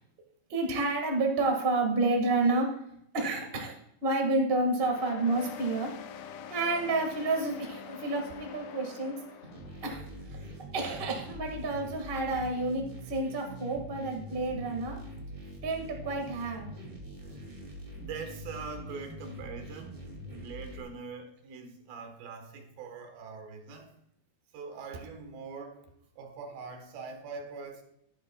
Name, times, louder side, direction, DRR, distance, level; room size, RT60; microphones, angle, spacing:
voice 1, 0.5-2.7 3.1-3.7 4.0-5.9 6.5-9.2 9.8-10.0 10.3-15.0 15.6-16.7, right 2 dB, 45° right, 1 dB, 0.7 m, -30 dB
sound 1, 4.8-9.9, left 8 dB, 80° left, 2.4 m, -45 dB
sound 2, 9.5-20.8, equal, 20° right, 1.6 m, -44 dB
voice 2, 18.0-20.0 20.3-23.9 24.5-25.9 26.2-27.8, right 5 dB, 70° right, 4 dB, 3.1 m, -43 dB
12.0 x 10.5 x 2.3 m, 0.74 s
omnidirectional pair, 4.4 m